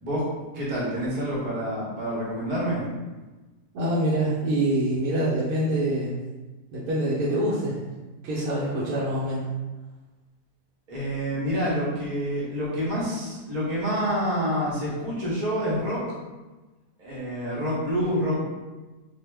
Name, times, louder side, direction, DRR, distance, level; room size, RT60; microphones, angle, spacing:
voice 1, 0.5-2.8 10.9-16.0 17.0-18.5, equal, 35° right, -6 dB, 0.6 m, -27 dB
voice 2, 3.7-6.2 6.7-7.8 8.2-9.5, right 1 dB, 70° right, -8 dB, 1.1 m, -25 dB
2.7 x 2.1 x 3.2 m, 1.2 s
omnidirectional pair, 1.7 m